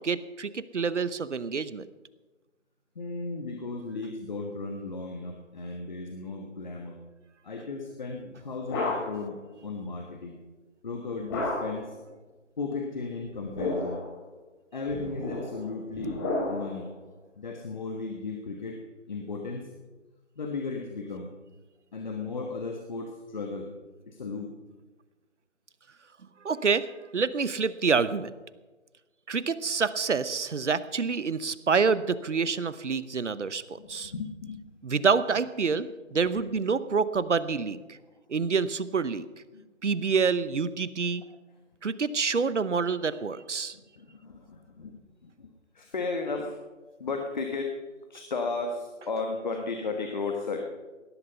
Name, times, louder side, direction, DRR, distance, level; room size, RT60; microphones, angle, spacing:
voice 1, 0.0-1.9 26.4-28.3 29.3-34.1 34.8-38.0 38.3-39.2 39.8-41.2 41.8-43.8, right 5 dB, 70° right, 15 dB, 0.9 m, -27 dB
voice 2, 2.9-7.0 7.4-10.4 10.8-12.0 12.6-14.0 14.7-16.2 16.5-16.9 17.3-18.8 19.1-19.7 20.4-21.3 21.9-23.7 24.1-24.5 33.8-34.6 36.3-36.4 38.4-38.5 39.5-39.6 43.7-46.6 47.0-47.8 48.1-50.6, left 3 dB, 35° left, 3 dB, 1.4 m, -35 dB
sound 1, 8.1-9.3 11.3-11.9 13.3-14.1 14.9-16.8, left 2 dB, 20° left, 4.3 m, -32 dB
17.5 x 11.5 x 5.6 m, 1.2 s
figure-of-eight pair, 160°, 37 cm